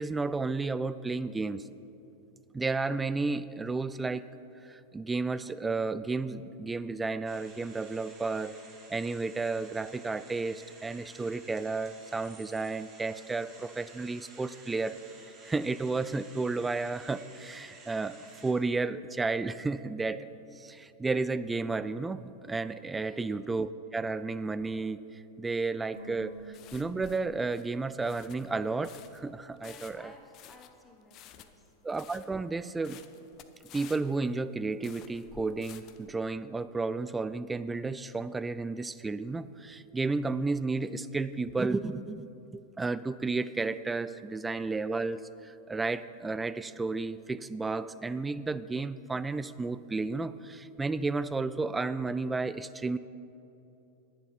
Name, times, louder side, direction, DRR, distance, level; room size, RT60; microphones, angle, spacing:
voice 1, 0.0-1.6 2.5-4.3 4.6-8.5 8.9-15.0 15.4-20.3 20.5-30.1 31.8-33.0 33.7-53.0, right 3 dB, 10° right, 15 dB, 0.3 m, -32 dB
sound 1, 7.2-18.5, right 3 dB, 25° right, 2.0 m, -54 dB
voice 2, 22.9-23.3 29.6-31.7, left 2 dB, 10° left, 2 dB, 1.4 m, -55 dB
sound 2, 25.9-29.3 29.5-29.6, left 1 dB, 80° left, 2.4 m, -51 dB
sound 3, 26.0-36.1, left 10 dB, 35° left, 0.6 m, -53 dB
10.5 x 10.0 x 5.7 m, 2.9 s
figure-of-eight pair, 90°, 0 cm